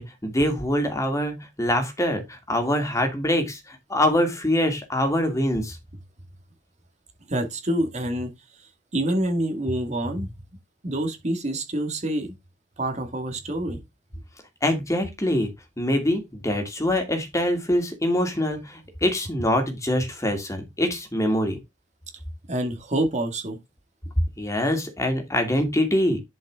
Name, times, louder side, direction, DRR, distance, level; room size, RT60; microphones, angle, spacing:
voice 1, 0.0-5.8 14.6-15.5 15.8-21.6 24.4-26.2, left 1 dB, 15° left, 2.4 m, -24 dB
voice 2, 7.3-10.3 10.8-12.3 12.8-13.8 22.5-23.6, right 1 dB, 40° right, 2.2 m, -27 dB
10.5 x 5.4 x 3.7 m
head